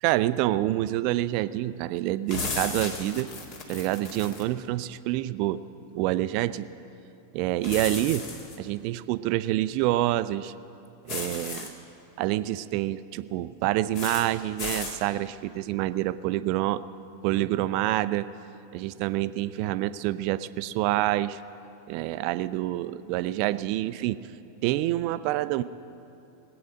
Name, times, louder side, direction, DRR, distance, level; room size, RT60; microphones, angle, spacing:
voice 1, 0.0-3.3 3.7-5.6 5.9-6.7 7.3-8.3 8.6-10.5 11.0-11.7 12.2-16.8 17.2-18.3 18.7-21.4 21.9-24.2 24.6-25.6, right 15 dB, 45° right, 15 dB, 0.4 m, -27 dB
sound 1, 2.3-4.5 7.6-8.6 11.1-11.7 13.9-14.3 14.6-15.0, left 4 dB, 45° left, 1.8 m, -34 dB
19.5 x 8.7 x 6.5 m, 2.8 s
figure-of-eight pair, 90°, 0 cm